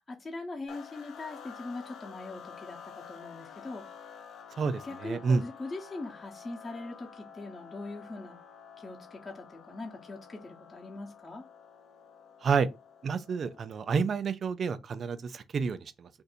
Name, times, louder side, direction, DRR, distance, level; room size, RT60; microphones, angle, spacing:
voice 1, 0.1-3.8 4.8-8.4 8.8-11.4, left 2 dB, 25° left, 0.9 m, -41 dB
sound 1, 0.7-14.1, left 7 dB, 70° left, 0.6 m, -50 dB
voice 2, 4.6-5.4 12.4-12.7 13.0-16.1, right 5 dB, 50° right, 0.4 m, -29 dB
2.7 x 2.6 x 4.1 m
cardioid pair, 90°, 0 cm